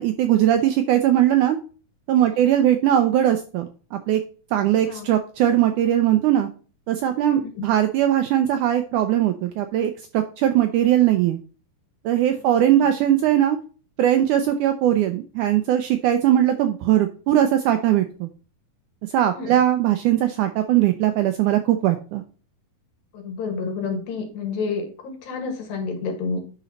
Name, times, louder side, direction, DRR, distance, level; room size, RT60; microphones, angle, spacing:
voice 1, 0.0-1.6 2.1-4.2 4.5-6.5 6.9-11.4 12.1-13.6 14.0-18.3 19.1-22.2, right 11 dB, 80° right, 7 dB, 1.8 m, -20 dB
voice 2, 7.2-7.7 12.9-13.0 19.3-19.6 23.1-26.4, left 4 dB, 80° left, 4 dB, 3.6 m, -30 dB
9.9 x 4.1 x 5.2 m, 0.38 s
omnidirectional pair, 4.2 m